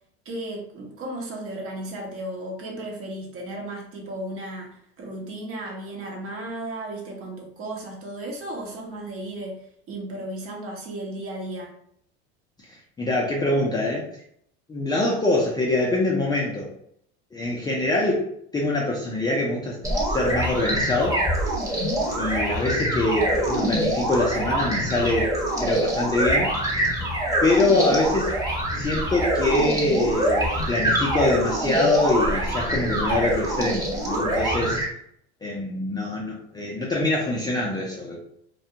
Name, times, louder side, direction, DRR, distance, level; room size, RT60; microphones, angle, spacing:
voice 1, 0.2-11.7, right 1 dB, 45° right, 0 dB, 0.9 m, -35 dB
voice 2, 13.0-14.1 14.7-16.7 17.3-18.2 18.5-19.8 20.0-21.2 22.1-26.5 27.4-28.3 28.7-34.8 35.4-38.2, left 2 dB, 15° left, -4 dB, 0.3 m, -24 dB
sound 1, 19.8-34.8, right 1 dB, 10° right, 0.8 m, -25 dB
2.3 x 2.2 x 2.7 m, 0.69 s
supercardioid pair, 105°, 32 cm